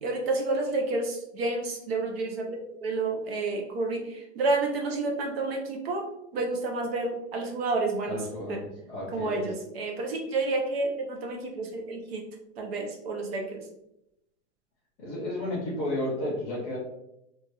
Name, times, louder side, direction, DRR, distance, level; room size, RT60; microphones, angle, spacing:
voice 1, 0.0-8.6 9.1-12.2 12.6-13.7, right 3 dB, 55° right, 2 dB, 0.5 m, -30 dB
voice 2, 8.1-8.6 8.9-9.5 15.0-16.8, left 1 dB, 5° left, -17 dB, 0.3 m, -32 dB
3.0 x 2.2 x 2.8 m, 0.84 s
supercardioid pair, 175°, 37 cm